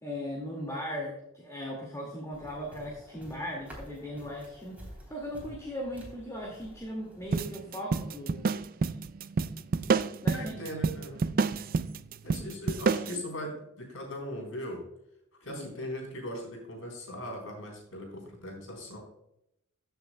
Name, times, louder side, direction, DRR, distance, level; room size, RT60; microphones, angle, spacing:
voice 1, 0.0-4.8 5.1-8.5 10.2-10.8 15.5-15.7, equal, 15° left, -2 dB, 2.0 m, -38 dB
sound 1, 2.3-7.3, equal, 5° right, 3.2 m, -50 dB
sound 2, 7.3-13.2, right 4 dB, 45° right, 0.4 m, -29 dB
voice 2, 10.3-11.3 12.2-14.8 15.4-19.0, left 1 dB, 70° left, 1 dB, 3.8 m, -39 dB
14.5 x 7.0 x 2.2 m, 0.81 s
head